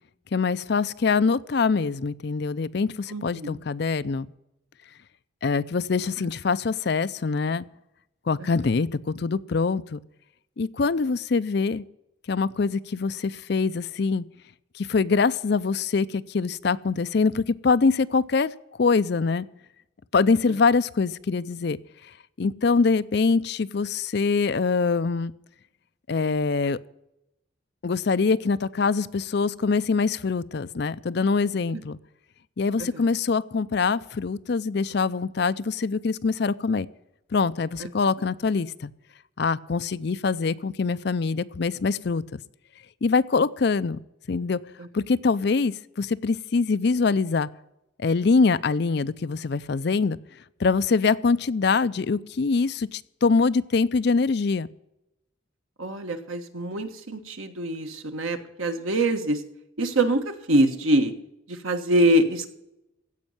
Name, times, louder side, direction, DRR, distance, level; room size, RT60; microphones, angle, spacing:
voice 1, 0.3-4.3 5.4-7.6 8.3-10.0 10.6-11.8 12.3-14.2 14.8-18.5 18.8-19.5 20.1-21.8 22.4-25.3 26.1-26.8 27.8-32.0 32.6-36.9 37.3-38.9 39.4-42.2 43.0-44.0 44.3-44.6 44.9-47.5 48.0-50.2 50.6-54.7, left 4 dB, 55° left, 15 dB, 0.5 m, -24 dB
voice 2, 3.1-3.6 6.2-6.3 8.4-8.7 20.5-20.6 31.7-31.8 32.8-33.1 37.8-37.9 44.8-44.9 55.8-59.4 59.8-61.1 61.5-62.5, right 1 dB, 90° right, 7 dB, 1.5 m, -25 dB
16.0 x 5.4 x 9.1 m, 0.87 s
head